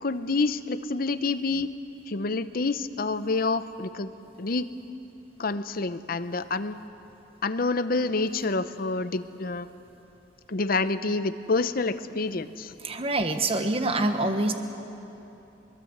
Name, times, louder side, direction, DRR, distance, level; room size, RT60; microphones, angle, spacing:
voice 1, 0.0-1.7 2.1-4.1 4.4-4.7 5.4-6.8 7.4-9.7 10.5-12.7, left 3 dB, 55° left, 12 dB, 0.8 m, -28 dB
voice 2, 12.8-14.5, right 2 dB, 35° right, 6 dB, 1.3 m, -25 dB
23.0 x 21.0 x 8.0 m, 2.9 s
head